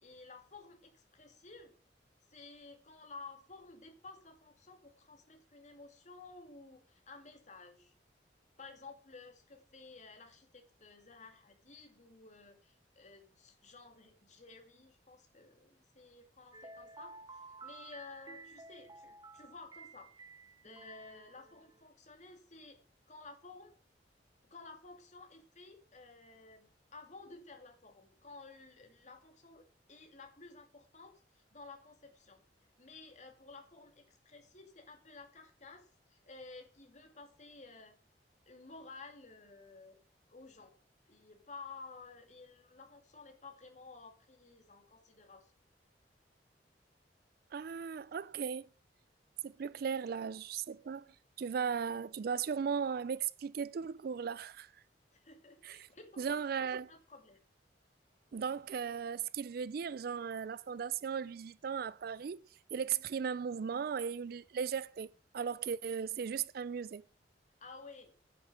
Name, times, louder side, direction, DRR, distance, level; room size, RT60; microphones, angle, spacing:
voice 1, 0.0-1.7 2.3-7.9 8.6-20.1 20.6-22.8 23.1-23.7 24.5-32.4 32.8-37.9 38.5-40.0 40.3-40.8 41.0-45.5 55.1-57.4 67.6-68.1, left 3 dB, 45° left, 2.4 m, -54 dB
sound 1, 16.5-21.8, right 2 dB, 25° right, 0.7 m, -53 dB
voice 2, 47.5-48.7 49.4-51.1 51.4-54.7 55.6-55.8 56.2-56.9 58.3-62.4 62.7-67.0, right 7 dB, 60° right, 0.4 m, -37 dB
9.3 x 6.5 x 6.8 m
head